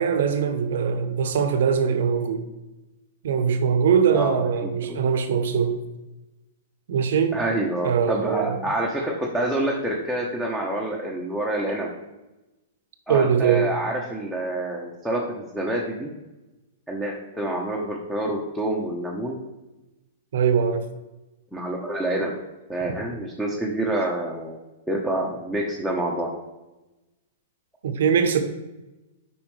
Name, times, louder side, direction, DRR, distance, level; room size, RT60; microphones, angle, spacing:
voice 1, 0.0-2.5 3.2-5.8 6.9-7.4 7.8-8.6 13.1-13.7 20.3-20.9 27.8-28.4, right 7 dB, 70° right, 0.9 m, -22 dB
voice 2, 4.1-5.0 7.3-11.9 13.1-16.1 16.9-19.4 21.5-22.3 22.7-24.6 24.9-26.3, right 1 dB, ahead, 1.1 m, -27 dB
8.5 x 5.2 x 3.3 m
hypercardioid pair, 115°, 0 cm